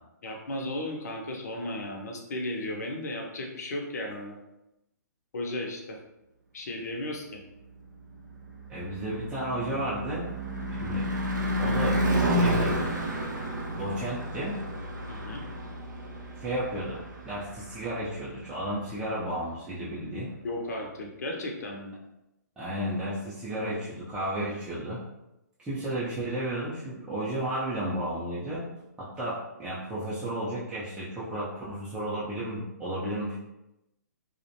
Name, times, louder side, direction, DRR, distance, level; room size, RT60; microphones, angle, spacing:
voice 1, 0.2-4.4 5.3-6.0 6.5-7.4 15.1-15.4 20.4-21.9, left 1 dB, 60° left, 1 dB, 0.5 m, -35 dB
Car passing by / Truck / Engine, 8.1-18.4, equal, 85° right, 0.5 m, -30 dB
voice 2, 8.7-10.3 10.7-11.0 11.6-12.0 12.2-12.8 13.8-14.6 16.4-20.3 22.6-25.0 25.6-28.7 29.0-33.4, right 1 dB, 10° right, -10 dB, 0.4 m, -33 dB
2.4 x 2.1 x 2.6 m, 0.90 s
figure-of-eight pair, 125°, 10 cm